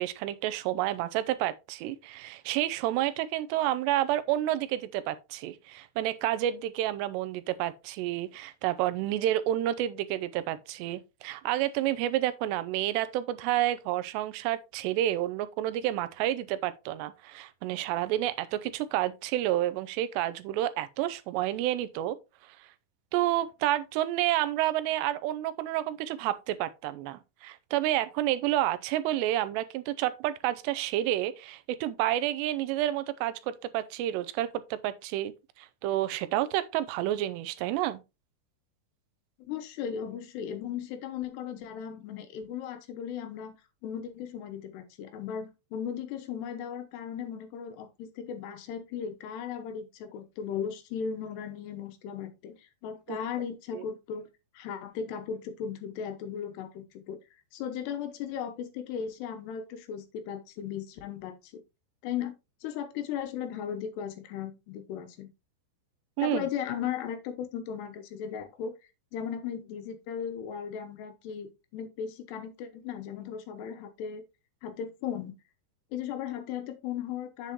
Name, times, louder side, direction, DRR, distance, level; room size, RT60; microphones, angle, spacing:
voice 1, 0.0-22.2 23.1-35.3 35.6-38.0 53.1-53.2 53.7-53.8 66.2-66.4, right 13 dB, 85° right, 2.8 m, -29 dB
voice 2, 39.5-43.6 43.8-54.3 54.5-57.2 57.5-61.5 62.0-62.4 62.6-65.3 66.2-68.7 69.1-74.2 74.6-75.3 75.9-77.5, left 8 dB, 80° left, 3.1 m, -36 dB
8.4 x 7.4 x 2.9 m
omnidirectional pair, 4.9 m